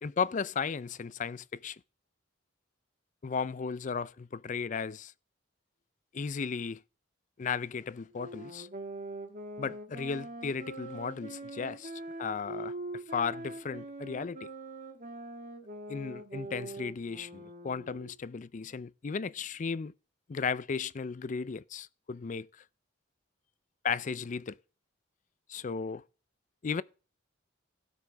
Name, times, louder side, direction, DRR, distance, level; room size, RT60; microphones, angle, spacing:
voice 1, 0.0-1.8 3.2-5.1 6.1-6.8 7.4-8.7 9.6-14.5 15.9-19.9 20.3-22.5 23.8-24.6 25.5-26.0 26.6-26.8, left 5 dB, 40° left, 0.4 m, -35 dB
sound 1, 8.1-18.1, right 2 dB, 40° right, 1.6 m, -43 dB
16.5 x 6.2 x 3.4 m
head